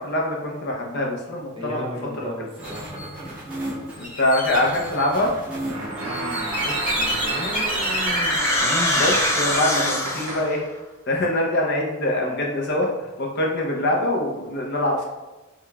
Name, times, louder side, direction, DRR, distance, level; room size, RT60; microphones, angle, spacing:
voice 1, 0.0-2.3 4.0-5.3 9.0-10.6 11.1-12.9 13.2-15.1, left 1 dB, 50° left, -1 dB, 0.6 m, -24 dB
voice 2, 1.6-3.0 5.7-9.1, equal, 25° right, -3 dB, 0.6 m, -35 dB
sound 1, 2.6-9.6, right 1 dB, 5° right, 1.1 m, -29 dB
sound 2, 5.7-10.7, right 2 dB, 75° right, 0.7 m, -31 dB
sound 3, 7.1-10.5, left 1 dB, 10° left, 0.3 m, -24 dB
4.7 x 2.3 x 2.3 m, 1.1 s
head